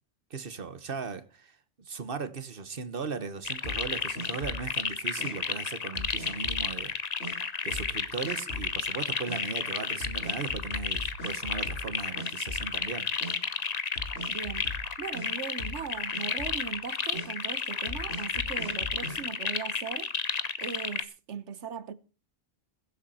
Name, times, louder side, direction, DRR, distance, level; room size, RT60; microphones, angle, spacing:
voice 1, 0.3-6.9 7.6-13.1, right 5 dB, 50° right, 1.5 m, -37 dB
sound 1, 3.4-21.0, left 5 dB, 40° left, 0.9 m, -32 dB
sound 2, 3.6-4.7 5.2-5.3 6.0-6.7 7.2-7.3 7.7-8.0 8.2-8.8 9.3-9.4 10.0-11.9 12.2-12.9 13.2-13.4 14.0-15.3 15.6-16.6 17.1-17.3 17.9-19.2, left 1 dB, 80° left, 4.7 m, -39 dB
voice 2, 14.3-20.1 20.6-21.9, right 6 dB, 75° right, 1.3 m, -39 dB
21.5 x 8.2 x 4.3 m
omnidirectional pair, 1.2 m